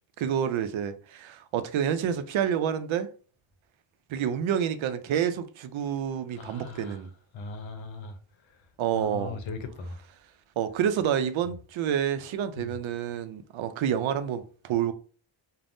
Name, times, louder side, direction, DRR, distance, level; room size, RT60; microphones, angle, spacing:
voice 1, 0.2-3.1 4.1-7.1 8.8-9.4 10.6-14.9, right 9 dB, 85° right, 0.5 m, -28 dB
voice 2, 6.3-7.1 7.3-8.7 8.9-10.0 12.6-12.8, left 4 dB, 75° left, 0.7 m, -39 dB
3.4 x 2.1 x 2.6 m
wide cardioid pair, 155°, 46 cm